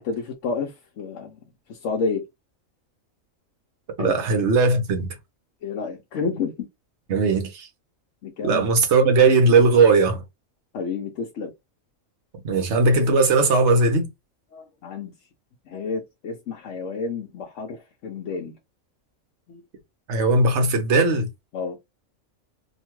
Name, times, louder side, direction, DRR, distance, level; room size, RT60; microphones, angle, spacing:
voice 1, 0.0-1.4 1.7-2.2 4.0-4.2 5.6-6.7 8.2-8.6 10.7-11.5 14.5-15.1 15.7-18.5 19.5-19.6 21.5-21.8, left 4 dB, 70° left, 0.9 m, -30 dB
voice 2, 4.0-5.1 7.1-7.7 8.4-10.2 12.4-14.1 20.1-21.3, right 3 dB, 60° right, 1.0 m, -18 dB
2.8 x 2.2 x 3.0 m
omnidirectional pair, 1.4 m